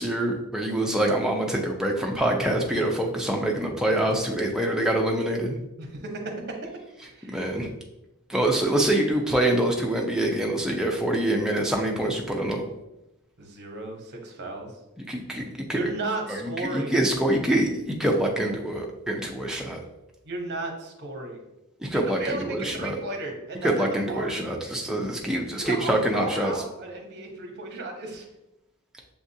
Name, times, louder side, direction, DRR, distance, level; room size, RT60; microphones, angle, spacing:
voice 1, 0.0-5.6 7.3-7.7 8.3-12.6 15.1-15.9 16.3-17.7 18.0-19.8 21.8-23.0 23.6-26.5, right 1 dB, 5° right, 0 dB, 0.5 m, -25 dB
voice 2, 5.8-6.6 7.1-7.5 8.3-8.6 13.4-14.7 15.7-16.9 20.2-21.4 21.9-24.3 25.5-28.3, right 2 dB, 50° right, 2 dB, 0.8 m, -34 dB
7.2 x 2.4 x 2.7 m, 0.95 s
head